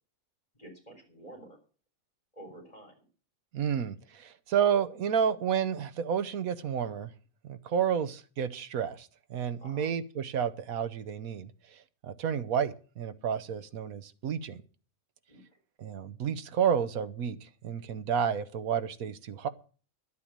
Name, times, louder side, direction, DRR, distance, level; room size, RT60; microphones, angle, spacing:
voice 1, 0.5-1.6 2.3-2.9 9.6-9.9 15.3-15.4, right 1 dB, 25° left, 4.0 m, -49 dB
voice 2, 3.5-7.1 7.4-11.5 12.0-14.6 15.8-19.5, right 8 dB, 80° right, 1.4 m, -30 dB
11.5 x 8.3 x 7.4 m
omnidirectional pair, 1.5 m